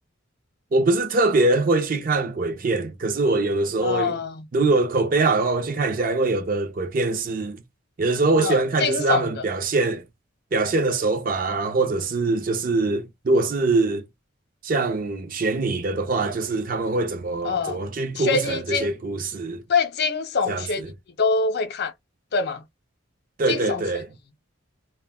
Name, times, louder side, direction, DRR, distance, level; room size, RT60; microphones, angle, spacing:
voice 1, 0.7-4.2 4.5-7.6 8.0-10.0 10.5-14.0 14.6-19.6 20.5-20.9 23.4-24.1, right 3 dB, 45° right, 0.4 m, -23 dB
voice 2, 3.8-4.3 8.4-9.4 17.4-17.8 18.2-18.9 19.7-20.9 21.2-21.9 22.3-22.6 23.5-23.8, left 4 dB, 50° left, 0.4 m, -24 dB
2.1 x 2.1 x 3.3 m
head